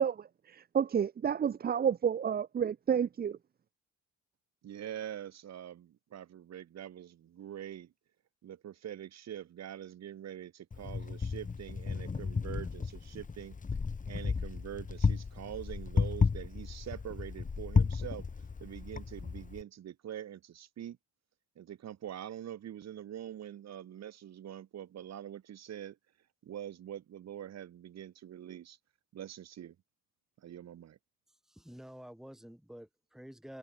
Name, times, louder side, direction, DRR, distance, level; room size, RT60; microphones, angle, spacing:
voice 1, 0.0-3.4, right 8 dB, 30° right, 0.6 m, -30 dB
voice 2, 4.6-7.9 8.4-13.6 14.1-21.0 21.5-26.0 26.4-28.8 29.1-29.7 30.4-31.0, right 10 dB, 60° right, 1.7 m, -44 dB
Wind, 10.7-19.6, left 5 dB, 25° left, 1.3 m, -33 dB
voice 3, 31.5-33.6, equal, ahead, 3.7 m, -49 dB
cardioid pair, 90°, 30 cm